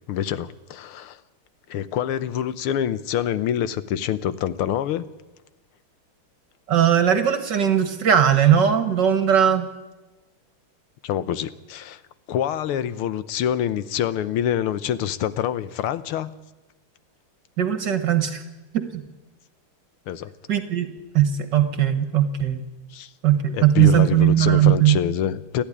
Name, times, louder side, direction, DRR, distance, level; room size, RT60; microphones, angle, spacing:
voice 1, 0.1-1.2 1.7-5.1 11.0-12.0 12.3-16.3 20.1-20.3 22.9-23.1 23.5-25.6, left 10 dB, 85° left, 15 dB, 1.8 m, -26 dB
voice 2, 6.7-9.7 17.6-18.4 18.7-19.0 20.5-20.9 21.1-22.6 23.2-25.0, right 10 dB, 55° right, 10 dB, 1.9 m, -19 dB
29.5 x 11.0 x 10.0 m, 1.1 s
omnidirectional pair, 2.4 m